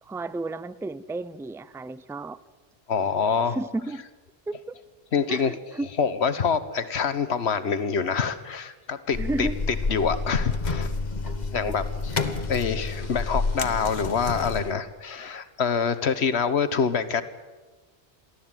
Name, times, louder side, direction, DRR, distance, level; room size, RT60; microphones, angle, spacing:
voice 1, 0.0-2.4 3.4-4.0 4.5-4.7 5.3-5.9 9.2-9.6 12.1-12.2, right 2 dB, 5° right, 16 dB, 0.4 m, -32 dB
voice 2, 2.9-3.6 5.1-5.5 6.0-9.5 9.9-10.9 11.5-11.8 12.5-17.2, left 6 dB, 75° left, 13 dB, 1.4 m, -25 dB
sound 1, 9.1-14.7, left 3 dB, 40° left, 1.3 m, -29 dB
23.0 x 15.0 x 9.0 m, 1.2 s
omnidirectional pair, 1.1 m